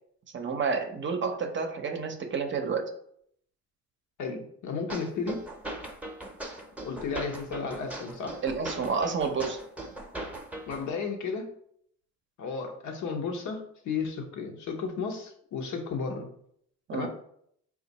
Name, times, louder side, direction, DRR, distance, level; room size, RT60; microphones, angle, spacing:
voice 1, 0.3-2.9 8.4-9.6 16.9-17.1, right 5 dB, 40° right, 6 dB, 0.6 m, -30 dB
voice 2, 4.2-5.4 6.8-8.4 10.7-11.5 12.4-16.3 16.9-17.1, left 5 dB, 75° left, 3 dB, 0.9 m, -33 dB
sound 1, 4.9-10.9, right 1 dB, 5° right, 0.7 m, -39 dB
4.4 x 2.4 x 4.0 m, 0.67 s
cardioid pair, 90°, 30 cm